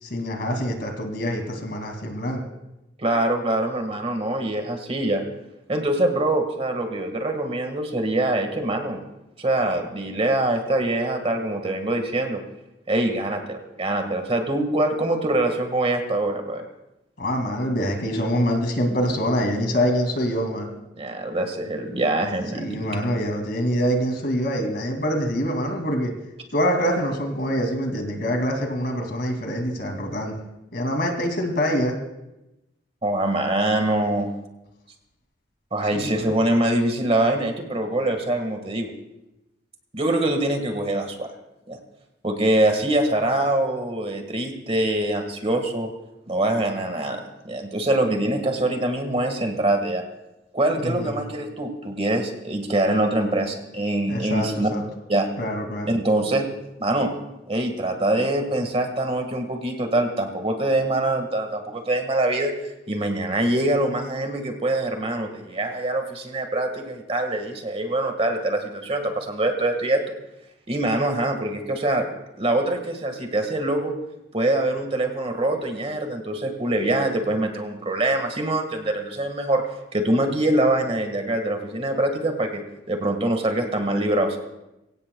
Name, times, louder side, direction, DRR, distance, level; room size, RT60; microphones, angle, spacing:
voice 1, 0.0-2.4 17.2-20.7 22.5-26.1 26.5-30.3 30.7-32.0 35.9-36.4 50.8-51.1 54.1-54.8 55.4-55.9, equal, 60° left, 3 dB, 2.5 m, -25 dB
voice 2, 3.0-5.2 5.7-9.0 9.4-12.4 12.9-16.6 21.0-22.8 33.0-34.3 35.7-38.9 39.9-41.3 41.7-41.8 42.2-45.9 46.3-50.0 50.5-54.7 55.1-55.3 55.9-56.5 56.8-57.1 57.5-62.5 62.9-70.0 70.7-72.1 72.4-73.9 74.3-79.6 79.9-82.6 82.9-84.4, right 1 dB, 35° right, 5 dB, 1.7 m, -24 dB
23.5 x 16.5 x 2.3 m, 0.94 s
head